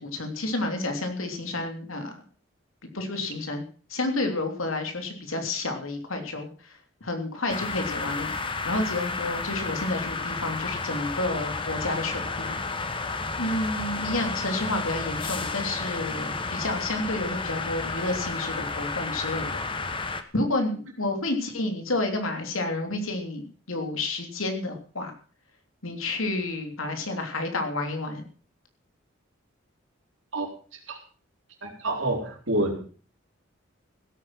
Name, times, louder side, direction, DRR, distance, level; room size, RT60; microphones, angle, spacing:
voice 1, 0.0-2.2 2.9-3.6 3.9-8.3 8.6-12.6 13.4-19.6 20.3-23.4 23.7-25.1 25.8-28.2, left 2 dB, 85° left, 4 dB, 3.2 m, -30 dB
sound 1, 7.5-20.2, left 3 dB, 25° left, 1.2 m, -32 dB
voice 2, 30.3-31.0 31.6-32.9, right 1 dB, 70° right, 2 dB, 4.2 m, -29 dB
16.0 x 9.1 x 6.1 m, 0.41 s
head